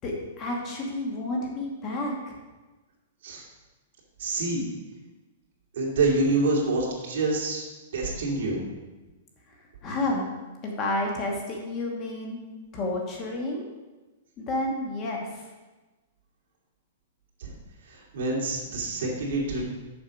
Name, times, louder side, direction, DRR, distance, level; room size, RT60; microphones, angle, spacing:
voice 1, 0.0-2.4 9.5-9.6 9.8-10.3 10.6-12.4 12.7-13.7 14.4-15.5, left 2 dB, 25° left, 0 dB, 1.2 m, -30 dB
voice 2, 4.2-4.7 5.7-7.6 7.9-8.6 17.4-17.5 17.9-19.6, right 2 dB, 60° right, -3 dB, 2.6 m, -26 dB
7.0 x 6.2 x 5.2 m, 1.2 s
hypercardioid pair, 165°, 0 cm